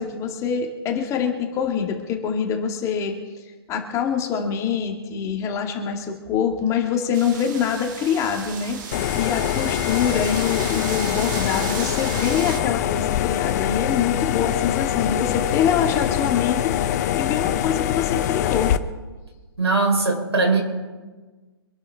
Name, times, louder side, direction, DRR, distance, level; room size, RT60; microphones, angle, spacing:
voice 1, 0.0-3.2 3.7-18.7, left 7 dB, 25° left, 3 dB, 2.1 m, -25 dB
sound 1, 7.1-12.6, right 6 dB, 50° right, 2.0 m, -34 dB
sound 2, 8.9-18.8, left 11 dB, 40° left, 0.9 m, -24 dB
voice 2, 19.6-20.6, right 3 dB, 85° right, 2 dB, 4.4 m, -20 dB
26.0 x 11.5 x 3.6 m, 1.3 s
figure-of-eight pair, 125°, 13 cm